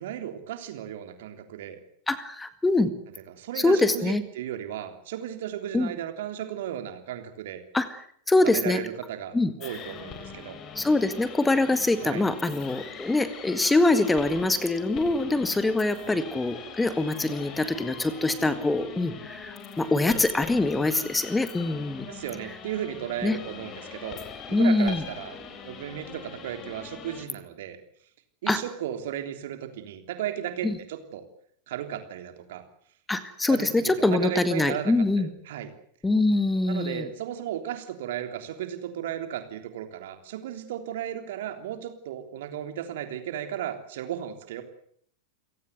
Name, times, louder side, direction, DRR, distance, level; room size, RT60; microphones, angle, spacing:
voice 1, 0.0-1.8 3.3-7.6 8.4-10.6 12.0-12.3 16.0-16.2 22.1-24.2 24.5-27.8 28.4-31.2 31.7-32.6 33.5-35.7 36.6-44.6, right 10 dB, 55° right, 7 dB, 3.3 m, -35 dB
voice 2, 2.1-2.9 3.6-4.2 5.7-5.9 7.7-7.9 8.3-8.8 9.3-9.5 10.8-22.1 23.2-23.4 24.5-25.0 28.5-28.6 30.6-30.8 33.1-35.3 36.0-37.1, left 2 dB, 10° left, 12 dB, 1.9 m, -24 dB
sound 1, 9.6-27.3, left 6 dB, 30° left, 4.1 m, -42 dB
29.0 x 18.0 x 8.1 m, 0.64 s
figure-of-eight pair, 90°, 0 cm